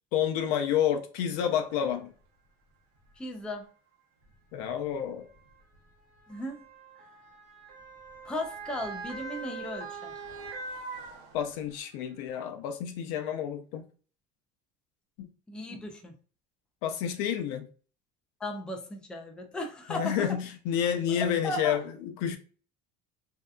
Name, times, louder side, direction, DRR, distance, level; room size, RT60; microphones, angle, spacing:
voice 1, 0.1-2.1 4.5-5.3 11.3-13.8 15.2-15.3 16.8-17.6 19.9-22.4, left 9 dB, 75° left, 0.5 m, -29 dB
Motor vehicle (road) / Siren, 1.9-2.0 2.9-3.1 4.2-11.8 12.3-12.4, right 3 dB, 65° right, 0.9 m, -43 dB
voice 2, 3.2-3.7 6.3-6.6 8.2-10.1 15.5-16.1 18.4-20.2 21.1-21.8, left 1 dB, 5° left, 0.3 m, -36 dB
2.7 x 2.2 x 2.3 m
cardioid pair, 135°, 21 cm